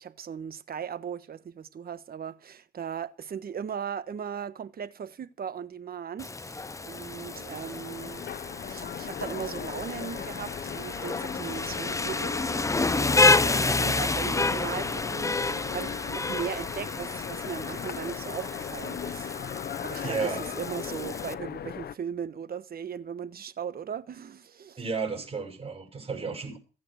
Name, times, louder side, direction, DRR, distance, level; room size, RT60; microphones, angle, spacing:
voice 1, 0.0-8.2 8.7-19.3 19.8-24.8 26.1-26.3, right 7 dB, 50° right, 1.3 m, -38 dB
Rain, 6.2-21.3, left 3 dB, 15° left, 0.7 m, -29 dB
Train, 6.6-21.9, left 9 dB, 55° left, 0.8 m, -38 dB
voice 2, 20.0-20.5 24.8-26.6, right 5 dB, 30° right, 7.1 m, -33 dB
16.0 x 8.9 x 6.6 m
cardioid pair, 90°, 20 cm